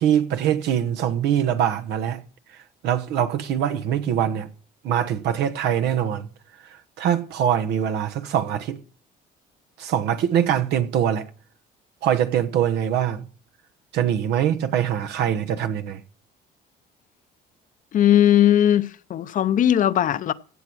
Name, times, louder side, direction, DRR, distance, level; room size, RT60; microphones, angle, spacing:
voice 1, 0.0-2.2 2.8-4.5 4.8-6.3 7.0-8.8 9.8-11.3 12.0-13.2 13.9-16.0, right 9 dB, 80° right, 1.2 m, -23 dB
voice 2, 17.9-20.3, left 11 dB, 50° left, 0.7 m, -18 dB
16.5 x 7.3 x 6.2 m
cardioid pair, 110°, 17 cm